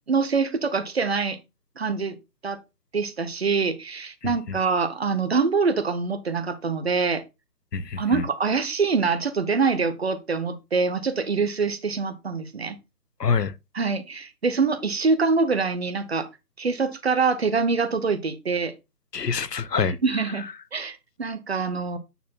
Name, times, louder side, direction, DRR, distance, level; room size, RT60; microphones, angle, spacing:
voice 1, 0.1-1.4 1.8-2.2 2.4-2.6 2.9-7.2 8.0-12.8 13.7-16.3 16.6-18.7 20.0-22.0, right 4 dB, 40° right, 1.0 m, -25 dB
voice 2, 4.2-4.6 7.7-8.3 13.2-13.5 19.1-20.0, left 5 dB, 80° left, 1.0 m, -26 dB
9.3 x 4.3 x 4.0 m
figure-of-eight pair, 155°, 48 cm